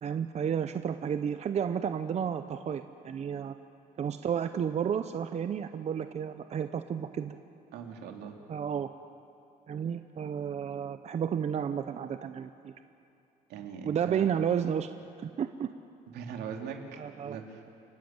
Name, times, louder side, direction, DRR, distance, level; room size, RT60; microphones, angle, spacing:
voice 1, 0.0-3.5 4.0-7.4 8.5-8.9 9.7-12.7 13.8-14.9 15.2-15.7 17.0-17.4, right 8 dB, 40° right, 9 dB, 0.7 m, -32 dB
voice 2, 7.7-8.4 13.5-14.3 16.1-17.6, right 7 dB, 80° right, 3 dB, 2.6 m, -41 dB
29.5 x 11.5 x 8.9 m, 2.7 s
cardioid pair, 110°, 17 cm